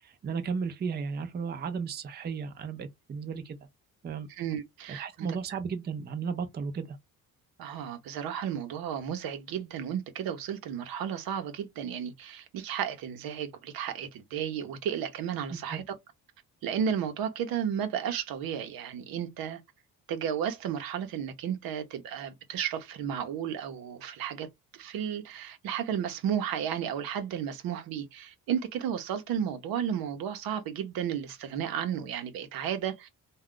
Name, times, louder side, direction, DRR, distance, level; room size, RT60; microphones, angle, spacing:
voice 1, 0.0-3.6 4.0-4.3 4.9-7.0 15.5-15.8, right 5 dB, 30° right, 0.5 m, -34 dB
voice 2, 4.3-5.3 7.6-15.8 16.6-19.6 20.1-24.5 24.7-33.1, right 8 dB, 80° right, 0.8 m, -33 dB
2.3 x 2.3 x 3.6 m
cardioid pair, 130°, 35 cm